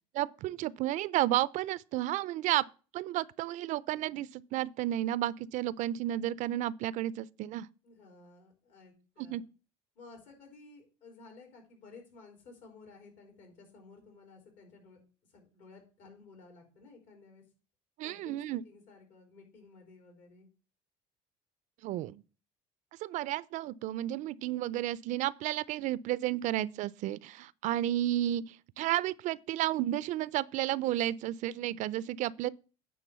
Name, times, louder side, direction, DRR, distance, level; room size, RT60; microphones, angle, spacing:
voice 1, 0.2-2.6 2.9-7.7 9.2-9.4 18.0-18.6 21.8-22.2 23.0-32.5, right 14 dB, 60° right, 0.4 m, -32 dB
voice 2, 7.8-9.4 10.0-15.0 15.3-17.4 18.0-20.5, left 4 dB, 65° left, 3.9 m, -55 dB
9.3 x 3.8 x 6.7 m
cardioid pair, 110°, 14 cm